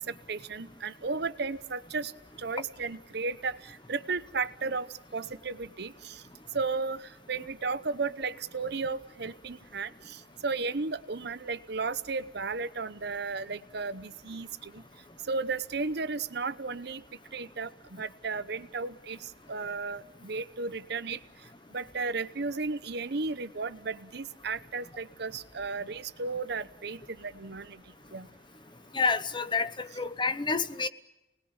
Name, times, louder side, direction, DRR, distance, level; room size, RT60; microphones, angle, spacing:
voice 1, 0.1-2.1 2.4-4.9 5.1-6.2 6.5-14.8 15.3-17.0 17.3-21.2 21.7-27.8 28.1-28.3, right 4 dB, 65° right, 14 dB, 0.8 m, -34 dB
voice 2, 28.9-30.9, left 4 dB, 25° left, 10 dB, 1.0 m, -29 dB
28.5 x 20.0 x 8.8 m, 0.94 s
head